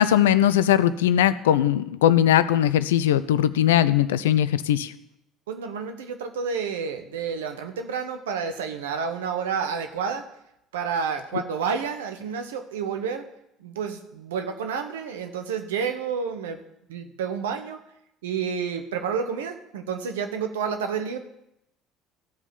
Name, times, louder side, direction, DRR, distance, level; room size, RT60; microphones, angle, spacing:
voice 1, 0.0-4.9, left 11 dB, 80° left, 15 dB, 0.5 m, -20 dB
voice 2, 5.5-10.2 10.7-13.2 13.6-16.6 16.9-17.8 18.2-21.2, right 6 dB, 80° right, 6 dB, 1.0 m, -30 dB
14.5 x 5.1 x 7.2 m, 0.81 s
hypercardioid pair, 60°, 0 cm